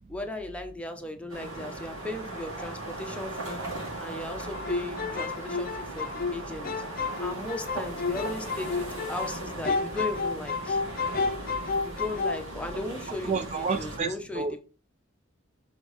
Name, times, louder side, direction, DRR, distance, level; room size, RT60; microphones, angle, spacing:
voice 1, 0.1-10.8 11.8-14.5, left 2 dB, 5° left, 0.8 m, -37 dB
sound 1, 1.3-14.0, right 2 dB, 65° right, 2.3 m, -38 dB
sound 2, 4.5-9.4 9.6-12.4, left 4 dB, 45° left, 0.6 m, -31 dB
voice 2, 13.3-14.6, right 4 dB, 35° right, 0.3 m, -30 dB
6.8 x 3.6 x 4.0 m
head